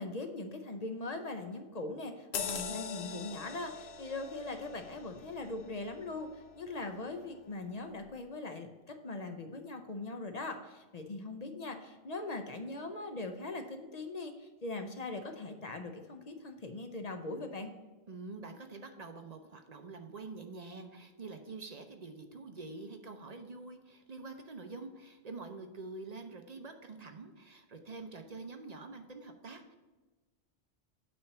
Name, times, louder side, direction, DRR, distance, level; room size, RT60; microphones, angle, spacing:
voice 1, 0.0-17.7, left 2 dB, 40° left, 5 dB, 0.7 m, -41 dB
sound 1, 2.3-7.3 7.7-7.9, left 6 dB, 70° left, 1.0 m, -43 dB
voice 2, 18.1-29.8, right 3 dB, 45° right, 6 dB, 0.7 m, -46 dB
8.6 x 3.4 x 6.7 m, 1.2 s
omnidirectional pair, 1.1 m